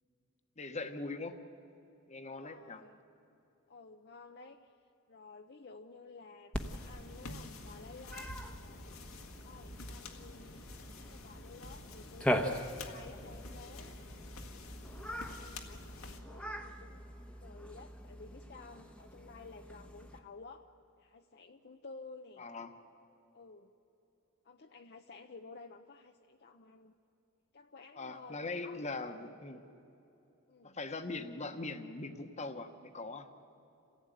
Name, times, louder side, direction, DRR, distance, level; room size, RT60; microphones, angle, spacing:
voice 1, 0.6-1.3 2.1-2.8 22.4-22.7 28.0-29.6 30.6-33.3, left 3 dB, 35° left, 7 dB, 1.2 m, -41 dB
voice 2, 2.2-3.0 3.7-4.7 5.1-9.2 9.4-10.6 10.9-14.0 14.8-17.0 17.4-20.7 21.0-22.5 23.3-23.7 24.4-26.9 27.5-28.8 30.5-30.8, left 4 dB, 50° left, 4 dB, 0.7 m, -53 dB
sound 1, 6.5-16.2, left 2 dB, 80° left, 1.8 m, -49 dB
Cat, 6.5-20.2, equal, 5° left, 1.1 m, -42 dB
27.5 x 16.0 x 9.2 m, 2.9 s
head